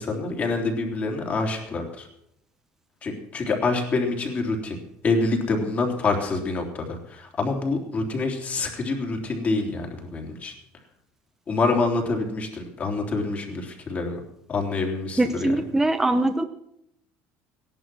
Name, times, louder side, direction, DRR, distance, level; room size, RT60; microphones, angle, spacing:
voice 1, 0.0-2.1 3.0-4.8 5.0-10.5 11.5-14.2 14.5-15.5, left 3 dB, 30° left, 2 dB, 3.3 m, -26 dB
voice 2, 15.2-16.4, right 2 dB, 10° right, 8 dB, 0.8 m, -22 dB
17.0 x 11.0 x 6.2 m, 0.76 s
cardioid pair, 135°, 5 cm